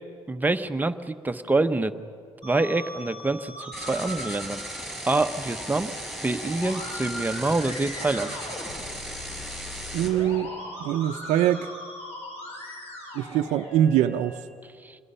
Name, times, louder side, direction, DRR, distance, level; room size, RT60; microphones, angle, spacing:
voice 1, 0.3-1.9 2.4-4.6 5.1-5.9 6.2-8.4 14.8-15.0, right 2 dB, 15° right, 8 dB, 1.0 m, -26 dB
Musical instrument, 2.4-14.4, left 1 dB, 60° left, 6.2 m, -40 dB
sound 1, 3.7-10.1, right 1 dB, ahead, 6.5 m, -37 dB
voice 2, 9.9-10.5 10.8-11.7 13.1-14.4, right 11 dB, 80° right, 5 dB, 0.6 m, -23 dB
27.0 x 21.0 x 5.6 m, 2.2 s
cardioid pair, 90°, 12 cm